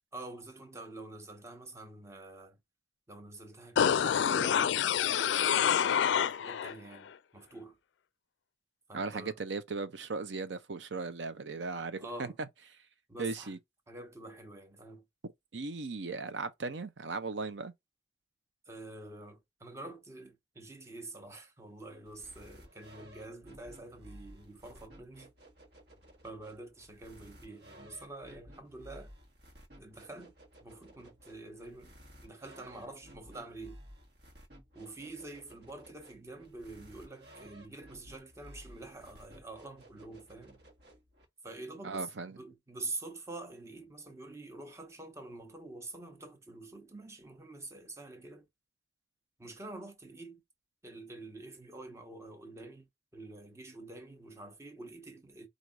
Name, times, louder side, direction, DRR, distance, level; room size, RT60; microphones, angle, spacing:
voice 1, 0.1-2.6 3.1-7.8 8.9-9.4 12.0-12.3 13.1-13.5 13.9-15.0 18.7-25.3 26.2-29.1 29.8-30.3 30.6-31.9 32.2-33.8 34.7-40.6 41.4-48.5 49.4-50.4 50.8-52.9 53.1-55.5, right 2 dB, 15° right, 0.9 m, -47 dB
sound 1, 3.8-6.7 7.1-7.2, left 8 dB, 80° left, 0.4 m, -27 dB
voice 2, 8.9-12.3 13.2-13.6 15.5-17.7 41.8-42.4, right 4 dB, 80° right, 0.7 m, -37 dB
sound 2, 22.1-41.3, equal, 60° right, 1.4 m, -55 dB
4.7 x 2.6 x 3.8 m
head